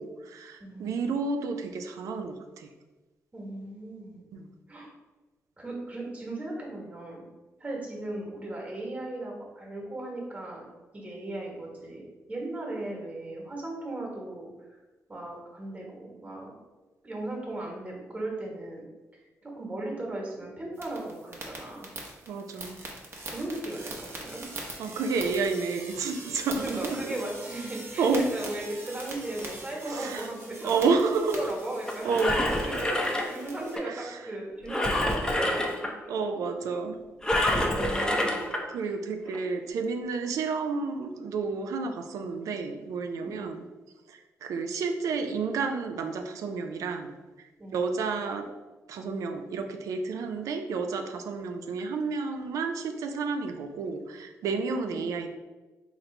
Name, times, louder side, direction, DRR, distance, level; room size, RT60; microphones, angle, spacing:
voice 1, 0.0-2.7 4.3-4.5 22.3-22.8 24.8-27.1 28.0-28.3 29.9-30.3 30.6-31.4 32.0-32.4 33.8-34.3 36.1-37.0 38.7-43.6 44.1-47.1 47.7-48.5 48.9-55.3, right 4 dB, 80° right, 6 dB, 0.4 m, -30 dB
voice 2, 0.6-1.2 3.3-4.2 4.7-4.9 5.6-7.2 7.6-10.6 10.9-14.5 15.1-16.5 17.0-18.8 19.4-21.9 23.3-24.4 26.6-30.8 31.3-35.9 37.7-38.4 43.1-43.4 47.6-47.8 54.9-55.1, right 2 dB, 25° right, -2 dB, 1.3 m, -37 dB
sound 1, 20.8-33.8, right 2 dB, 45° right, 0.9 m, -42 dB
Engine, 31.9-33.8 34.7-35.9 37.2-38.6 39.3-39.4, left 1 dB, 15° left, 0.6 m, -27 dB
3.8 x 3.0 x 3.2 m, 1.2 s
cardioid pair, 90°, 6 cm